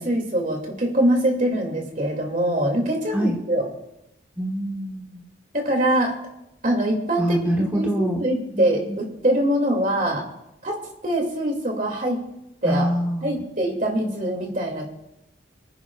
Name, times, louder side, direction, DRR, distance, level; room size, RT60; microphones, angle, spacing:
voice 1, 0.0-3.7 5.5-6.1 6.6-7.4 7.7-10.2 10.6-10.8 11.0-12.2 12.6-12.9 13.2-14.9, right 1 dB, 45° right, 1 dB, 2.4 m, -23 dB
voice 2, 4.4-5.2 7.2-9.0 12.6-13.4, equal, 10° right, -1 dB, 1.0 m, -25 dB
27.0 x 9.6 x 2.4 m, 0.85 s
head